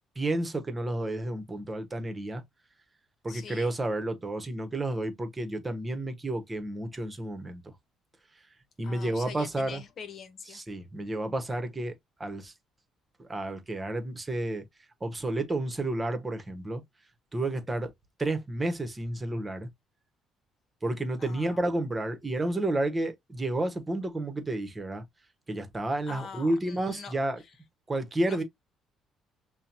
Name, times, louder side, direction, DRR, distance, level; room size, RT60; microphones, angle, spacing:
voice 1, 0.1-2.4 3.2-7.6 8.8-9.8 10.5-11.9 12.2-12.5 13.3-14.6 15.0-16.8 17.3-17.9 18.2-19.7 20.8-25.0 25.5-27.4 27.9-28.4, right 1 dB, 25° right, 1.2 m, -31 dB
voice 2, 3.3-3.7 8.8-10.6 21.2-21.9 26.1-27.5 28.3-28.4, left 6 dB, 55° left, 1.0 m, -44 dB
5.5 x 2.3 x 2.7 m
hypercardioid pair, 50°, 0 cm